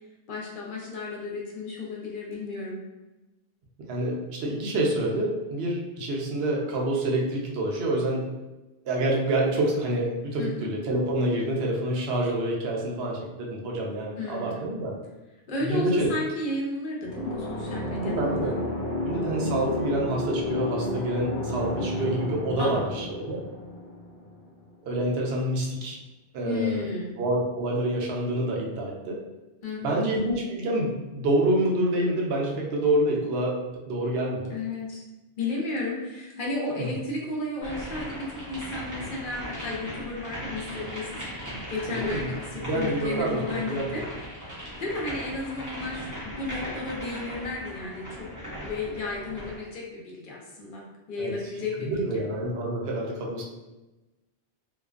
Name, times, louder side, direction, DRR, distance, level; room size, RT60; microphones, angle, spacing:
voice 1, 0.3-2.8 10.4-10.7 14.2-14.6 15.5-18.6 22.6-22.8 26.4-27.2 29.6-30.1 34.5-35.0 35.4-41.1 41.5-44.0 44.5-52.2, left 2 dB, 55° left, -3 dB, 0.6 m, -33 dB
voice 2, 3.9-8.3 8.8-14.9 15.6-16.1 18.0-18.5 19.0-23.4 24.8-26.0 26.3-26.8 27.2-29.2 29.8-33.6 33.9-34.5 36.8-36.9 41.9-42.3 42.6-43.9 51.2-51.3 51.8-53.4, right 1 dB, 65° right, -2 dB, 0.8 m, -27 dB
sound 1, 17.0-24.7, left 1 dB, 20° left, 0.6 m, -31 dB
sound 2, 37.6-49.7, equal, 20° right, 0.7 m, -38 dB
2.4 x 2.1 x 2.3 m, 1.1 s
omnidirectional pair, 1.1 m